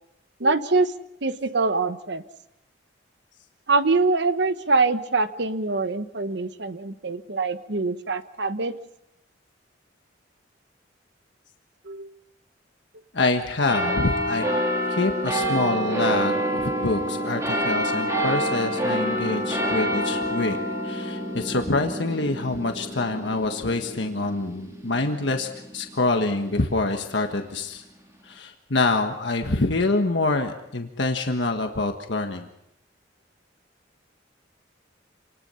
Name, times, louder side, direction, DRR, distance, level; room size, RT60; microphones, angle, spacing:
voice 1, 0.4-0.9 1.2-2.2 3.7-8.7 11.8-12.1, right 3 dB, 65° right, 11 dB, 1.1 m, -24 dB
voice 2, 13.1-14.4 14.9-20.6 20.8-25.5 25.7-27.8 28.2-32.5, left 2 dB, 65° left, 4 dB, 1.5 m, -26 dB
sound 1, 13.7-26.5 27.2-27.3, equal, 15° right, 3.7 m, -27 dB
27.5 x 20.0 x 5.7 m, 0.83 s
head